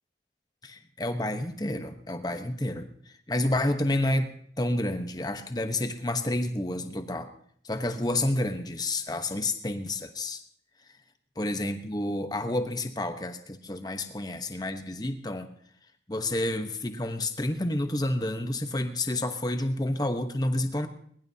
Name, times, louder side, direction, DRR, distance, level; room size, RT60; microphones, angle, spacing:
voice 1, 0.6-2.9 3.3-4.3 4.6-7.3 7.6-10.4 11.4-15.5 16.1-20.9, left 1 dB, 20° left, 8 dB, 1.1 m, -29 dB
21.5 x 20.5 x 2.8 m, 0.63 s
head